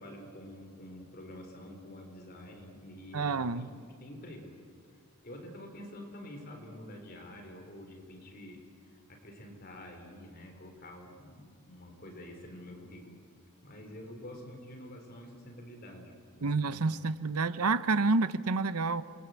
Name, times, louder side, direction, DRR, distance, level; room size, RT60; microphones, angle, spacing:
voice 1, 0.0-3.7 4.0-4.6 5.2-8.6 8.9-13.2 13.6-16.9 17.4-17.6, left 1 dB, 45° left, 3 dB, 3.9 m, -48 dB
voice 2, 3.1-3.7 16.4-19.0, right 3 dB, 90° right, 14 dB, 0.8 m, -29 dB
28.0 x 21.0 x 8.2 m, 2.1 s
head